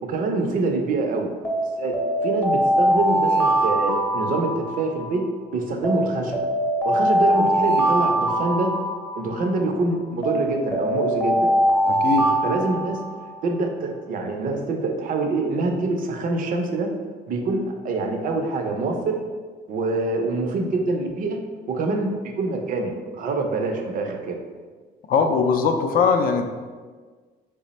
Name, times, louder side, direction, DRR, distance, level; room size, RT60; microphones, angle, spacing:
voice 1, 0.0-1.3 1.8-5.3 5.5-6.4 6.8-8.7 9.2-11.5 12.4-13.0 13.4-16.9 17.3-19.2 19.7-21.4 21.7-24.4, right 3 dB, 55° right, 3 dB, 0.5 m, -25 dB
Alarm, 1.4-5.2 5.8-9.5 10.2-13.4, right 1 dB, 15° left, 0.6 m, -22 dB
voice 2, 11.9-12.3 25.1-26.4, left 5 dB, 60° left, 6 dB, 0.4 m, -20 dB
3.2 x 2.0 x 4.0 m, 1.5 s
cardioid pair, 110°, 17 cm